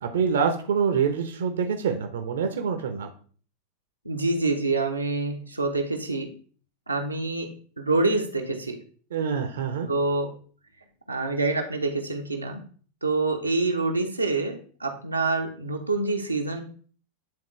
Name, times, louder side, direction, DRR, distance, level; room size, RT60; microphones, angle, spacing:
voice 1, 0.0-3.1 9.1-9.9, right 6 dB, 60° right, 6 dB, 0.9 m, -26 dB
voice 2, 4.0-6.3 6.9-7.5 7.8-8.8 9.9-10.3 11.1-12.6 13.0-16.6, right 3 dB, 85° right, 1 dB, 0.9 m, -26 dB
9.6 x 3.9 x 3.2 m, 0.44 s
figure-of-eight pair, 90°, 0 cm